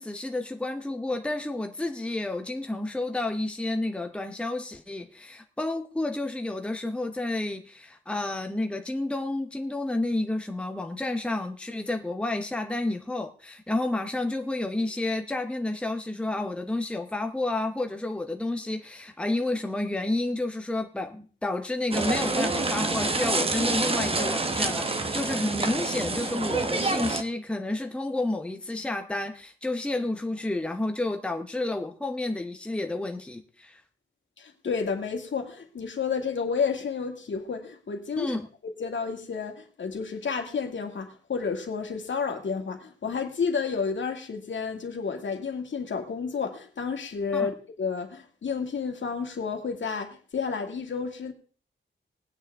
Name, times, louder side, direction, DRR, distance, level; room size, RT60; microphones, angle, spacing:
voice 1, 0.0-33.8 38.2-38.5 47.3-47.5, left 2 dB, 5° left, 0.9 m, -30 dB
sound 1, 21.9-27.2, right 3 dB, 25° right, 1.0 m, -27 dB
voice 2, 34.4-38.4 38.6-51.3, left 5 dB, 65° left, 2.1 m, -31 dB
20.0 x 9.3 x 3.5 m
wide cardioid pair, 155°, 21 cm